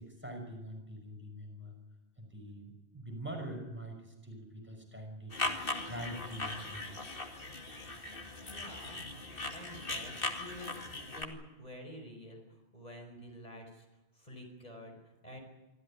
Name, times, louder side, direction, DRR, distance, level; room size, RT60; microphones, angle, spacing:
voice 1, 0.0-1.8 2.2-7.0, right 1 dB, 10° right, 2 dB, 5.6 m, -44 dB
sound 1, 5.3-11.3, left 2 dB, 60° left, 2.6 m, -39 dB
voice 2, 8.4-9.0 9.5-13.9 14.1-15.4, left 1 dB, 40° left, 2 dB, 5.1 m, -49 dB
25.0 x 15.0 x 10.0 m, 1.1 s
omnidirectional pair, 1.1 m